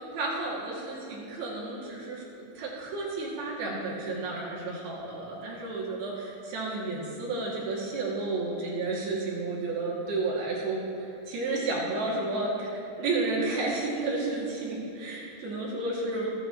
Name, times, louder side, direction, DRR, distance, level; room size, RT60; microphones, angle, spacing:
voice 1, 0.1-10.8 11.3-16.3, right 3 dB, 75° right, -5 dB, 4.2 m, -32 dB
27.5 x 9.5 x 3.0 m, 2.8 s
omnidirectional pair, 4.4 m